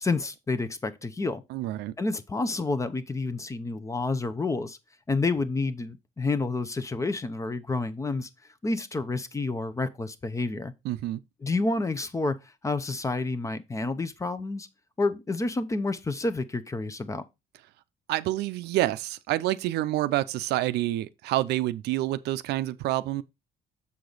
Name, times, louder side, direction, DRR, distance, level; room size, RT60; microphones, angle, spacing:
voice 1, 0.0-1.4 2.0-4.8 5.1-8.3 8.6-10.7 11.4-12.4 12.6-14.7 15.0-17.2, left 3 dB, 20° left, 0.7 m, -29 dB
voice 2, 1.5-1.9 10.8-11.2 18.1-23.2, right 15 dB, 80° right, 0.5 m, -28 dB
7.1 x 4.9 x 3.9 m
cardioid pair, 110°, 17 cm